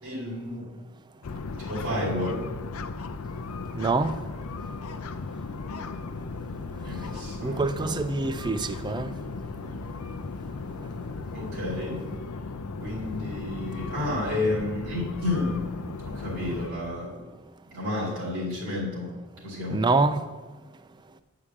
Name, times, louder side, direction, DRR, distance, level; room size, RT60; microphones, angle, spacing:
voice 1, 0.0-0.7 1.6-2.4 6.8-8.0 11.3-12.0 12.8-15.6 16.0-17.2 17.7-19.1 19.4-19.8, left 2 dB, 70° right, -6 dB, 2.5 m, -31 dB
sound 1, 1.2-16.7, left 3 dB, 85° left, 0.6 m, -36 dB
voice 2, 3.7-4.1 7.4-9.1 19.7-20.2, right 3 dB, 20° right, 11 dB, 0.4 m, -25 dB
9.8 x 4.9 x 7.1 m, 1.3 s
head